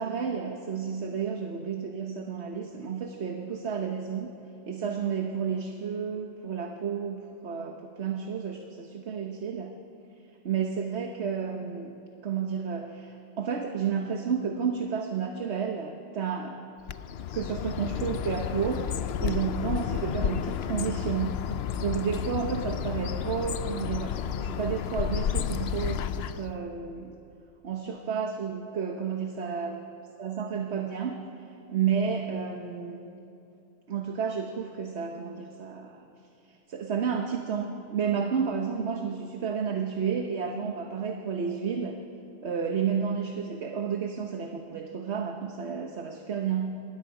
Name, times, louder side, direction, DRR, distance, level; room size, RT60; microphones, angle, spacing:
voice 1, 0.0-4.3 4.7-9.8 10.4-11.9 12.2-16.6 17.3-18.9 19.2-21.4 21.8-27.1 27.6-29.7 30.2-31.2 31.5-33.0 33.9-36.0 36.5-42.0 42.4-46.8, right 6 dB, 55° right, 3 dB, 1.3 m, -31 dB
Bird, 16.9-26.6, left 9 dB, 60° left, 0.7 m, -31 dB
27.0 x 20.0 x 5.0 m, 2.7 s
omnidirectional pair, 1.4 m